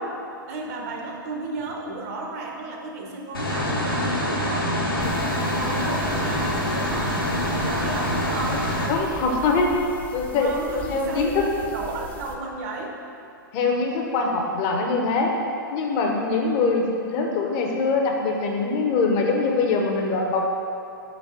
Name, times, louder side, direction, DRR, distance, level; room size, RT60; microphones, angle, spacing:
voice 1, 0.5-8.6 10.4-13.0, right 3 dB, 40° right, 1 dB, 0.7 m, -33 dB
sound 1, 3.3-8.9, left 1 dB, 85° left, 1.2 m, -25 dB
sound 2, 5.0-12.4, left 2 dB, 15° left, 0.4 m, -39 dB
voice 2, 8.9-9.7 10.1-10.5 10.9-11.5 13.5-15.3 15.7-20.4, left 4 dB, 35° left, 1 dB, 0.8 m, -23 dB
5.6 x 4.0 x 4.4 m, 2.5 s
figure-of-eight pair, 105°, 12 cm